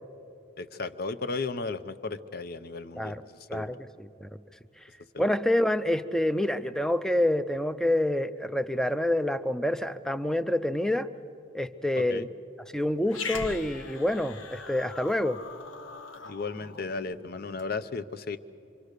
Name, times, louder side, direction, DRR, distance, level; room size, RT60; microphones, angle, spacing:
voice 1, 0.6-3.2 3.5-3.7 5.1-5.3 12.1-12.3 16.2-18.4, left 4 dB, 50° left, 13 dB, 0.7 m, -34 dB
voice 2, 3.5-4.3 5.2-11.1 11.5-12.3 12.7-15.4, left 1 dB, 5° left, 12 dB, 0.5 m, -27 dB
Growling, 13.1-17.7, left 4 dB, 75° left, 1.1 m, -41 dB
26.0 x 25.0 x 6.7 m, 2.7 s
head